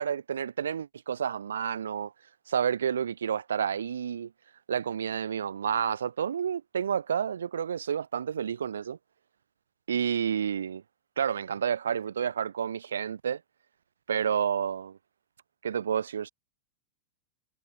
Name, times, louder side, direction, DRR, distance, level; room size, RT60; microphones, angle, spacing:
voice 1, 0.0-2.1 2.5-4.3 4.7-9.0 9.9-10.8 11.2-13.4 14.1-15.0 15.6-16.3, right 8 dB, 65° right, 1.8 m, -30 dB
figure-of-eight pair, 90°, 0 cm